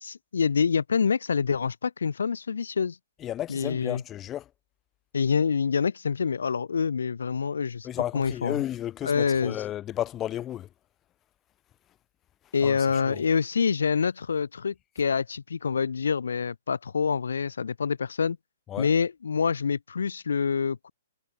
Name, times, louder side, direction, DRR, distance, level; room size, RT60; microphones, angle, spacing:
voice 1, 0.0-3.0 3.5-4.0 5.1-7.9 8.1-8.6 9.0-9.6 12.5-18.4 18.8-20.9, left 6 dB, 75° left, 0.9 m, -26 dB
voice 2, 3.2-4.4 7.8-10.7 12.6-12.8 13.1-13.2 18.7-18.9, left 12 dB, 25° left, 0.5 m, -33 dB
hypercardioid pair, 125°, 0 cm